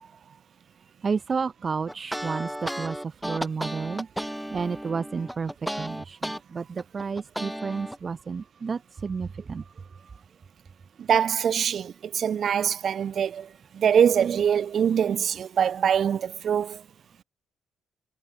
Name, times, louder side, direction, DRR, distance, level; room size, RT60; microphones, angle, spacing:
voice 1, 1.0-3.0 3.2-4.1 4.5-5.5 5.8-6.6 6.9-9.6, right 5 dB, 40° right, 0.5 m, -31 dB
sound 1, 1.9-6.4 6.8-8.0, equal, ahead, 3.2 m, -33 dB
voice 2, 11.0-13.5 13.7-16.8, right 8 dB, 55° right, 1.6 m, -23 dB
cardioid pair, 90°, 0 cm